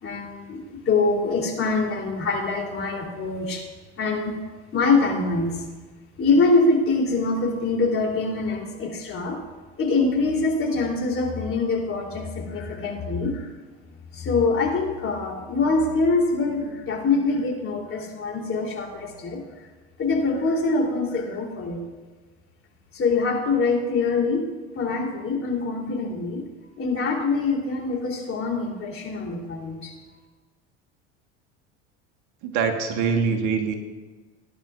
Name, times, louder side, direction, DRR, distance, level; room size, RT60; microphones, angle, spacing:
voice 1, 0.0-3.6 4.0-4.3 4.7-5.6 6.2-9.4 9.8-13.5 14.1-19.4 20.0-21.8 22.9-24.4 24.8-26.4 26.8-29.9, left 3 dB, 35° left, 0 dB, 3.5 m, -24 dB
voice 2, 32.4-33.7, right 5 dB, 60° right, 4 dB, 1.6 m, -23 dB
17.5 x 11.0 x 2.6 m, 1.3 s
hypercardioid pair, 80°, 35 cm